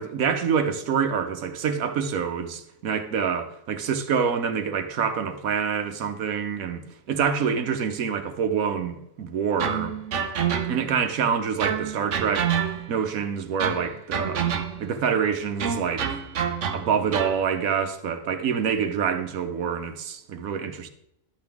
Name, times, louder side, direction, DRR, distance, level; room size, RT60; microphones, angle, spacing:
voice 1, 0.0-10.0 10.7-12.5 12.9-14.4 14.8-16.2 16.7-20.9, right 7 dB, 90° right, 1.3 m, -26 dB
sound 1, 9.6-11.0 11.6-13.1 13.6-15.0 15.6-17.4, right 7 dB, 60° right, 1.1 m, -28 dB
11.5 x 7.8 x 3.5 m
omnidirectional pair, 1.4 m